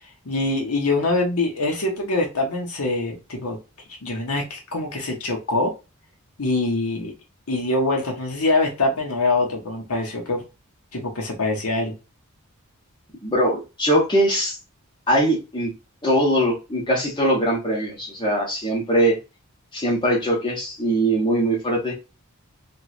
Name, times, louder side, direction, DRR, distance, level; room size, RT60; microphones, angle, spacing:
voice 1, 0.2-3.6 4.0-5.7 6.4-7.1 7.5-10.4 10.9-11.9, left 2 dB, 90° left, 1 dB, 1.1 m, -24 dB
voice 2, 13.2-14.5 15.1-15.7 16.0-19.2 19.7-21.9, right 1 dB, 20° left, -4 dB, 1.3 m, -21 dB
3.0 x 2.6 x 2.5 m, 0.28 s
head